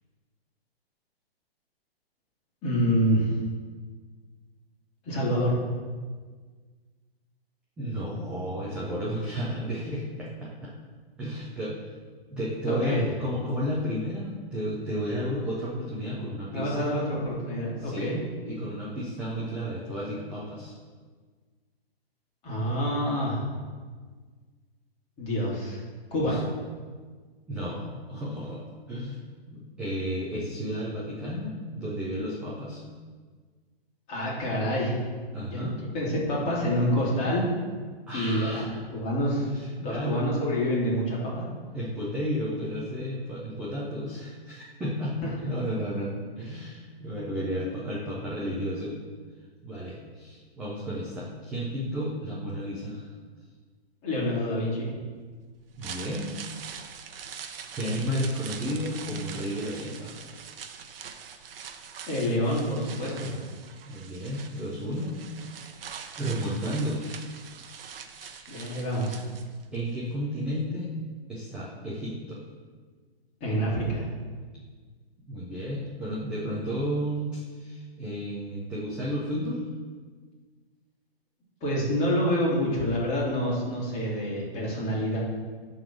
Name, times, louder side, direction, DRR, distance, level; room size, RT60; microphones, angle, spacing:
voice 1, 2.6-3.3 5.0-5.6 12.7-13.1 16.5-18.2 22.4-23.4 25.2-25.8 26.1-26.3 34.1-35.0 35.5-37.4 38.1-39.5 39.8-41.4 54.0-54.9 62.1-63.4 68.5-69.2 73.4-74.0 81.6-85.2, equal, 20° left, -6 dB, 2.6 m, -27 dB
voice 2, 7.8-10.7 11.2-11.7 12.3-16.9 17.8-18.1 18.4-20.7 26.2-26.4 27.5-28.6 28.9-29.2 29.5-32.8 35.3-35.8 38.1-38.8 39.4-40.2 41.7-49.0 49.6-53.1 55.8-56.3 57.7-60.2 63.9-65.5 66.2-67.3 68.3-68.5 69.7-70.9 71.3-72.4 75.3-79.7, equal, 5° right, -7 dB, 0.4 m, -32 dB
sound 1, 55.6-69.8 70.1-70.2, right 7 dB, 65° right, 0.9 m, -43 dB
11.5 x 3.9 x 6.0 m, 1.5 s
hypercardioid pair, 150°, 31 cm